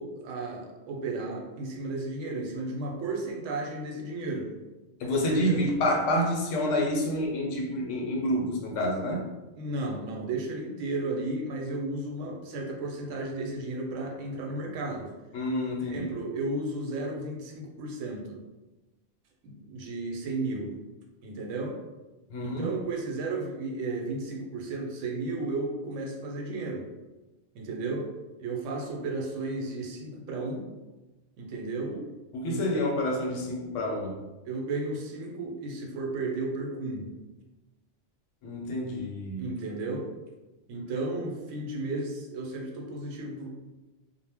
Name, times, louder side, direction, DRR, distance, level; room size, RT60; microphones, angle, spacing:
voice 1, 0.0-4.5 5.2-5.7 9.5-15.1 15.9-18.4 19.4-20.7 21.2-21.8 22.4-26.8 27.5-28.1 28.4-30.7 31.4-32.0 32.5-32.9 34.5-37.1 39.4-40.1 40.7-43.5, right 2 dB, 85° right, 0 dB, 0.9 m, -34 dB
voice 2, 5.0-9.2 15.3-16.2 22.3-22.7 31.9-32.0 32.3-34.1 38.4-39.4, left 1 dB, 85° left, -1 dB, 0.9 m, -28 dB
2.1 x 2.0 x 3.3 m, 1.1 s
omnidirectional pair, 1.3 m